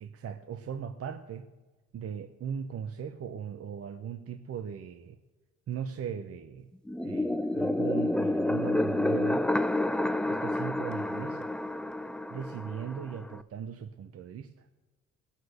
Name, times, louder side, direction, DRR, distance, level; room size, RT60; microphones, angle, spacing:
voice 1, 0.0-1.5 1.9-5.2 5.7-6.7 7.0-9.4 10.3-11.5 12.3-14.7, right 8 dB, 50° right, 9 dB, 0.8 m, -38 dB
sound 1, 6.9-13.4, left 1 dB, 5° left, 0.3 m, -29 dB
18.5 x 6.4 x 6.6 m, 1.3 s
cardioid pair, 90°, 30 cm